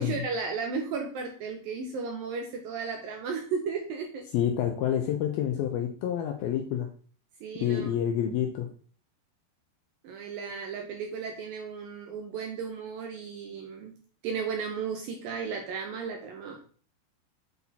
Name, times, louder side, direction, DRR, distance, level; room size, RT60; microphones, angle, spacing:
voice 1, 0.0-4.3 7.4-7.9 10.0-13.9 14.2-16.6, right 5 dB, 75° right, 2 dB, 2.2 m, -34 dB
voice 2, 4.3-6.9 7.6-8.7, left 9 dB, 80° left, 4 dB, 2.3 m, -28 dB
8.5 x 4.2 x 4.1 m, 0.43 s
omnidirectional pair, 5.0 m